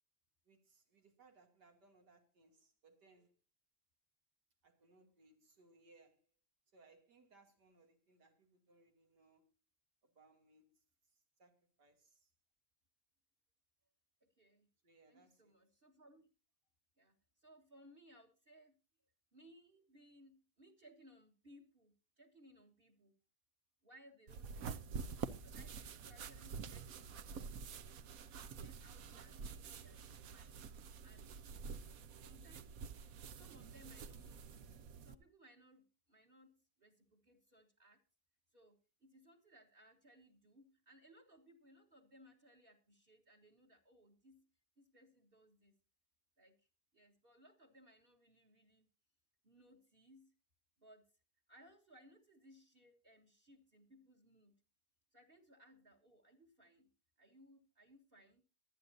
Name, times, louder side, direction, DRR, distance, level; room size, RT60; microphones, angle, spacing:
voice 1, 0.4-3.3 4.6-6.3 6.7-9.6 10.0-12.3 14.8-15.5, right 3 dB, 90° right, 3.3 m, -68 dB
voice 2, 14.2-14.7 15.1-16.3 17.0-18.8 19.3-23.2 23.8-24.8 25.4-27.9 28.4-30.7 31.0-31.4 32.2-32.8 33.3-34.8 35.0-38.0 38.5-44.5 44.8-45.8 46.4-46.7 46.9-48.9 49.4-50.3 50.8-51.1 51.5-54.6 55.1-56.9 57.2-58.5, equal, 35° right, 1.7 m, -65 dB
sound 1, 24.3-35.2, right 6 dB, 65° right, 1.2 m, -48 dB
sound 2, 24.6-28.7 29.3-29.9, left 1 dB, 20° left, 1.0 m, -74 dB
23.5 x 9.3 x 2.7 m
omnidirectional pair, 1.8 m